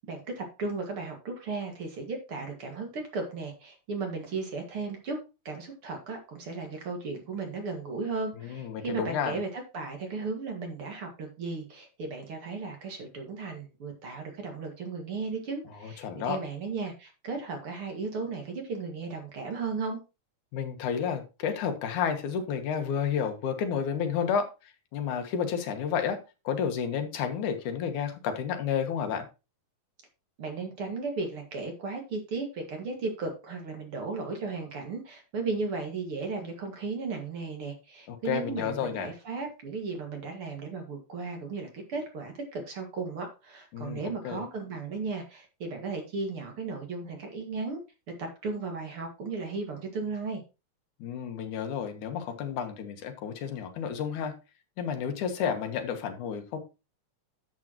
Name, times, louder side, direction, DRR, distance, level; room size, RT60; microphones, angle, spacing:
voice 1, 0.1-5.2 5.4-20.0 30.4-47.8 48.2-50.4, right 4 dB, 50° right, 3 dB, 2.7 m, -35 dB
voice 2, 8.4-9.4 15.8-16.4 20.5-26.2 26.4-29.3 38.1-39.1 43.7-44.4 51.0-54.3 54.8-56.6, left 7 dB, 85° left, 6 dB, 2.7 m, -31 dB
11.5 x 7.4 x 3.0 m, 0.28 s
omnidirectional pair, 3.5 m